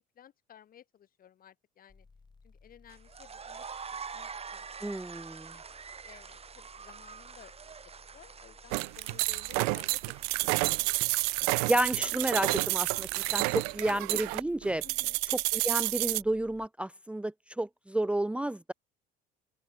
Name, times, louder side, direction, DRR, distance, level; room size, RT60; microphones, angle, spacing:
voice 1, 0.0-2.1 2.4-7.5 8.1-10.8 14.8-15.2, left 10 dB, 50° left, 4.1 m, -56 dB
sound 1, 1.9-16.7, left 4 dB, 25° left, 6.2 m, -59 dB
sound 2, 2.9-12.2, right 6 dB, 30° right, 2.5 m, -46 dB
voice 2, 4.8-5.5 9.6-9.7 11.6-14.8 15.5-18.7, right 1 dB, 5° right, 0.7 m, -31 dB
sound 3, 8.7-16.2, right 32 dB, 85° right, 0.5 m, -30 dB
open air
supercardioid pair, 85°, 19 cm